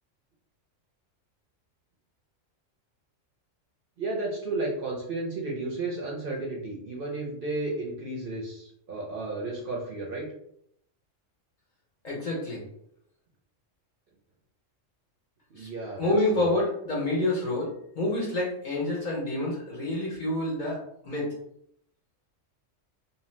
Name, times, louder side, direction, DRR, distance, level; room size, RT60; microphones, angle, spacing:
voice 1, 4.0-10.3 15.5-16.5, right 2 dB, 55° right, -3 dB, 0.7 m, -33 dB
voice 2, 12.0-12.6 15.6-15.7 16.0-17.7 17.9-21.3, left 1 dB, 45° left, -4 dB, 0.7 m, -28 dB
2.7 x 2.1 x 3.1 m, 0.71 s
omnidirectional pair, 1.3 m